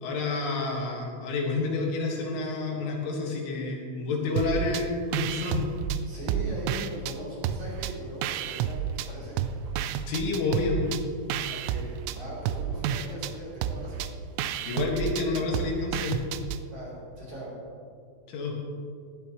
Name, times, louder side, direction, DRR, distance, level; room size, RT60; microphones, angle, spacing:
voice 1, 0.0-5.7 10.1-10.8 14.7-16.2 18.3-18.5, left 3 dB, 70° left, -2 dB, 4.1 m, -29 dB
sound 1, 4.4-4.9 5.1-7.2 7.4-9.1 9.4-16.6, right 9 dB, 85° right, 2.9 m, -31 dB
voice 2, 6.1-9.4 11.5-14.1 16.7-17.6, right 1 dB, 35° right, -6 dB, 4.6 m, -40 dB
18.5 x 15.0 x 3.1 m, 2.3 s
omnidirectional pair, 5.9 m